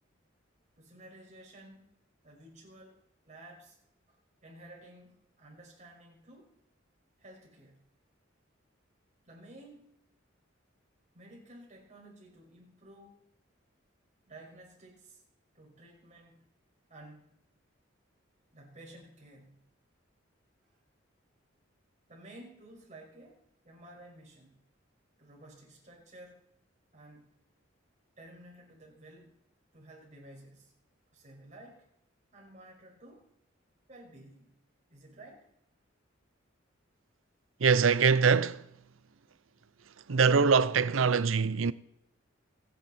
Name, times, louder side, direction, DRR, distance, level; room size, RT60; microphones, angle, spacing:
voice 1, 0.8-1.9 2.2-3.0 3.3-3.8 4.1-6.5 7.2-7.8 9.3-10.0 11.1-13.2 14.2-15.2 15.5-16.5 16.9-17.5 18.5-19.6 20.7-20.8 22.1-24.6 25.2-26.5 26.9-27.4 28.2-29.4 29.7-30.7 31.1-31.8 32.3-33.3 33.9-34.5 34.9-35.5, right 1 dB, 40° right, 5.7 m, -53 dB
voice 2, 37.6-38.6 40.1-41.7, right 5 dB, 85° right, 0.6 m, -23 dB
25.5 x 9.7 x 4.3 m
head